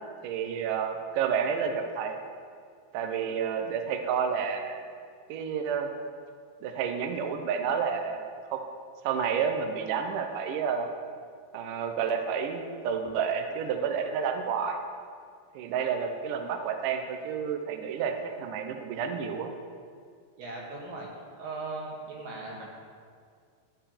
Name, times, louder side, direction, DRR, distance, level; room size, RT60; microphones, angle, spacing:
voice 1, 0.2-2.2 2.9-4.8 5.3-5.9 6.6-8.2 8.5-8.6 9.0-10.9 11.5-14.8 15.5-19.5, right 7 dB, 90° right, 5 dB, 1.8 m, -30 dB
voice 2, 20.4-21.1 21.4-22.7, right 3 dB, 60° right, -3 dB, 2.9 m, -38 dB
13.0 x 4.8 x 8.7 m, 2.2 s
omnidirectional pair, 5.0 m